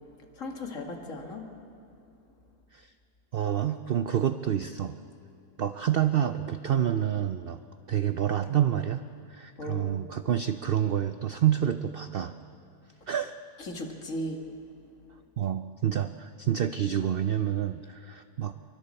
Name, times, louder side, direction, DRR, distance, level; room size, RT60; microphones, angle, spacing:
voice 1, 0.4-1.5 9.6-9.9 13.6-14.4, left 1 dB, 55° left, 2 dB, 2.2 m, -36 dB
voice 2, 3.3-5.0 5.6-7.6 7.9-9.0 9.3-12.3 13.1-13.4 15.4-18.5, right 10 dB, 85° right, 10 dB, 0.5 m, -28 dB
27.5 x 24.0 x 4.3 m, 2.6 s
omnidirectional pair, 1.7 m